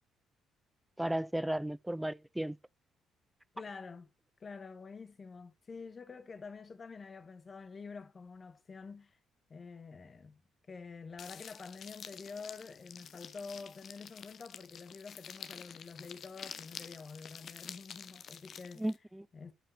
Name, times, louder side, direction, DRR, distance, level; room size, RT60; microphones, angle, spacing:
voice 1, 1.0-2.6 18.8-19.3, right 1 dB, 5° right, 0.4 m, -34 dB
voice 2, 3.5-4.1 4.4-9.2 9.5-10.4 10.7-18.8 19.3-19.5, left 4 dB, 40° left, 1.2 m, -48 dB
sound 1, 11.2-19.0, left 7 dB, 55° left, 0.8 m, -49 dB
12.5 x 5.5 x 3.3 m
hypercardioid pair, 50°, 0 cm